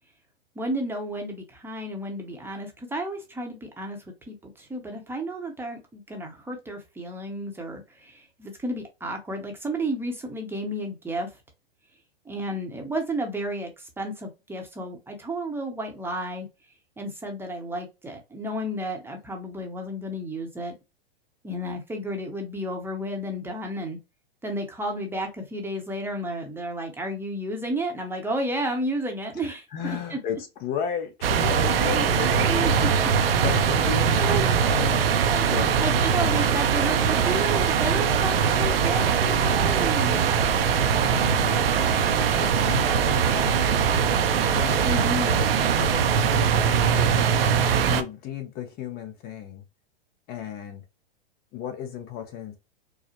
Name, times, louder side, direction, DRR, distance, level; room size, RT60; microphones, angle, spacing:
voice 1, 0.5-4.0 4.3-11.3 12.3-16.5 17.0-20.7 21.4-24.0 24.4-30.2 31.8-32.0 32.5-32.9 34.2-34.5 35.3-35.5 35.8-40.3 44.8-45.4, right 1 dB, 5° right, 0.8 m, -32 dB
voice 2, 29.3-32.9 33.4-34.4 34.7-35.7 36.3-36.4 41.0-41.6 42.4-44.1 44.5-45.5 45.8-47.3 47.9-49.6 50.3-50.8 51.5-52.6, left 8 dB, 30° left, 0.7 m, -34 dB
sound 1, 31.2-48.0, right 7 dB, 70° right, 0.6 m, -22 dB
4.7 x 2.1 x 2.9 m
hypercardioid pair, 115°, 30 cm